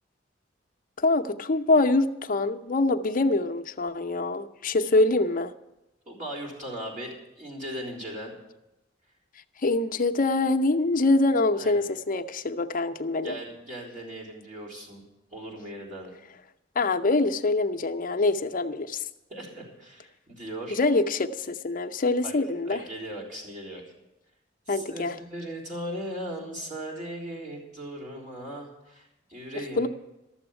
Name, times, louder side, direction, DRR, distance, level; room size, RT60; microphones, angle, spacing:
voice 1, 1.0-5.5 9.6-13.4 16.8-19.0 20.8-22.8 24.7-25.1 29.8-29.9, left 2 dB, 45° left, 8 dB, 0.6 m, -24 dB
voice 2, 6.1-8.3 11.6-11.8 13.2-15.0 15.3-16.1 19.3-20.8 22.2-22.3 22.6-23.8 24.7-29.9, right 1 dB, 45° right, -3 dB, 3.8 m, -38 dB
13.0 x 7.0 x 9.0 m, 0.94 s
head